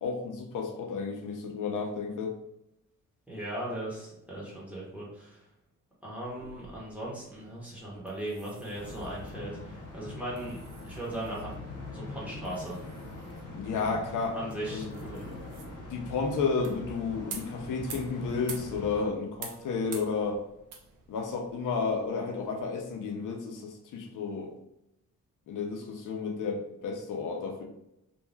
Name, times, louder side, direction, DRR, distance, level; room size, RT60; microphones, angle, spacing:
voice 1, 0.0-2.3 13.5-14.4 14.7-14.9 15.9-20.4 21.1-24.5 25.5-27.6, left 4 dB, 80° left, 2 dB, 0.6 m, -32 dB
voice 2, 3.3-5.4 6.0-10.6 10.8-11.5 11.9-12.8 14.3-15.2, right 1 dB, 5° right, -7 dB, 0.9 m, -38 dB
sound 1, 6.2-23.1, right 5 dB, 80° right, 0.6 m, -50 dB
sound 2, 8.7-19.0, left 2 dB, 50° left, 0.9 m, -43 dB
2.6 x 2.2 x 3.2 m, 0.86 s
wide cardioid pair, 170°, 31 cm